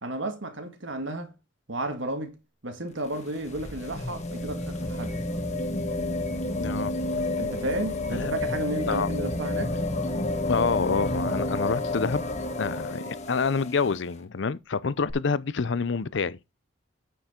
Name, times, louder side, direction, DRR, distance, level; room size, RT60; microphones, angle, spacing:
voice 1, 0.0-1.3 1.7-2.4 2.6-5.2 7.4-9.8, right 1 dB, 70° right, 1.9 m, -33 dB
sound 1, 2.9-13.9 15.1-15.2, left 2 dB, 35° left, 1.5 m, -30 dB
voice 2, 6.6-6.9 8.1-8.3 8.9-9.1 10.5-12.2 12.6-16.4, left 5 dB, 60° left, 0.5 m, -27 dB
9.2 x 6.9 x 3.7 m
head